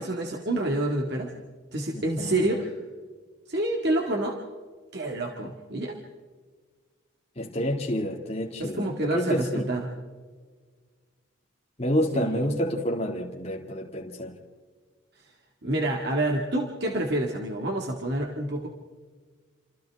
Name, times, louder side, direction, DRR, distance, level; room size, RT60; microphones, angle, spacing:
voice 1, 0.0-1.3 1.7-2.7 3.5-4.4 4.9-6.0 8.6-9.9 12.1-12.5 15.6-18.7, right 1 dB, 55° right, 1.9 m, -28 dB
voice 2, 1.9-2.6 7.4-9.7 11.8-14.3, equal, 30° left, 2.1 m, -29 dB
28.0 x 27.5 x 3.5 m
head